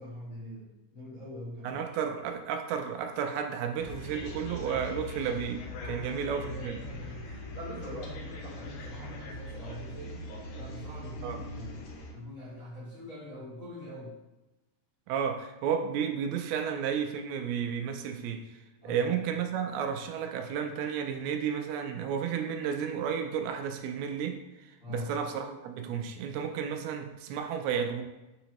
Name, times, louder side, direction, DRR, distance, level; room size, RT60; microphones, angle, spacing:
voice 1, 0.0-1.8 5.8-10.2 10.5-11.8 12.1-14.1 18.8-19.1 24.8-25.1, left 1 dB, 50° left, -11 dB, 1.0 m, -43 dB
voice 2, 1.6-6.8 11.2-11.4 15.1-18.5 18.9-28.0, right 7 dB, 90° right, 5 dB, 2.4 m, -32 dB
sound 1, 3.8-12.1, left 1 dB, 90° left, 2.6 m, -41 dB
6.6 x 2.8 x 2.9 m, 1.0 s
omnidirectional pair, 4.2 m